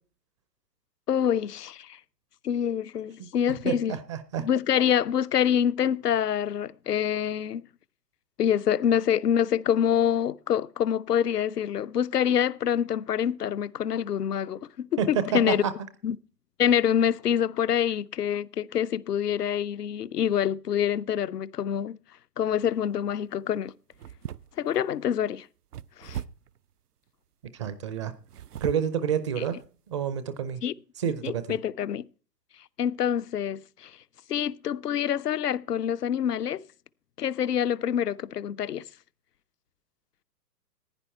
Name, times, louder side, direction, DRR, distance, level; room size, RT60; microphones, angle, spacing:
voice 1, 1.1-2.0 2.4-4.0 4.4-7.6 8.4-15.6 16.0-16.2 16.6-22.0 22.4-23.7 24.6-25.5 26.0-26.2 30.6-30.7 31.2-32.0 32.8-33.9 34.3-36.6 37.2-38.8, left 9 dB, 70° left, 0.7 m, -26 dB
voice 2, 3.6-4.5 15.0-15.7 27.5-28.1 28.6-29.6 29.9-30.6 31.0-31.6, right 8 dB, 20° right, 0.5 m, -29 dB
sound 1, 22.5-22.9 23.9-24.8 25.7-26.6 28.2-29.0 29.6-29.7 30.2-30.3, right 10 dB, 70° right, 0.6 m, -39 dB
15.0 x 9.9 x 4.3 m
figure-of-eight pair, 115°, 48 cm